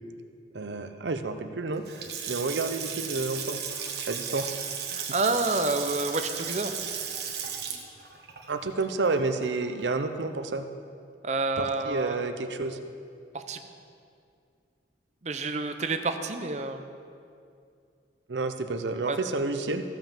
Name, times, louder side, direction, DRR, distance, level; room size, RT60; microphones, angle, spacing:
voice 1, 0.5-1.8 2.3-3.6 4.1-4.5 8.5-10.7 11.6-12.8 18.3-19.8, right 3 dB, 85° right, 8 dB, 0.7 m, -30 dB
Water tap faucet / Sink (filling or washing) / Splash splatter, 1.7-9.8, right 7 dB, 65° right, 1.2 m, -35 dB
voice 2, 4.9-6.7 11.2-12.2 13.3-13.6 15.2-16.9 19.1-19.2, right 3 dB, 40° right, 7 dB, 0.7 m, -29 dB
14.5 x 5.7 x 7.3 m, 2.4 s
head